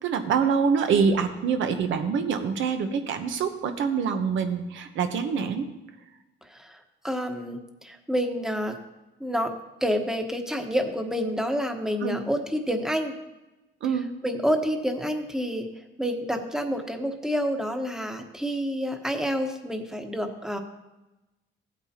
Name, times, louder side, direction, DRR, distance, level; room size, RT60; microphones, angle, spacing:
voice 1, 0.0-5.7 12.0-12.3 13.8-14.1, right 6 dB, 75° right, 7 dB, 1.0 m, -25 dB
voice 2, 7.0-8.8 9.2-9.5 9.8-13.2 14.2-15.7 16.0-20.6, equal, 5° right, 5 dB, 1.2 m, -28 dB
15.0 x 8.8 x 2.9 m, 1.0 s
cardioid pair, 90°, 20 cm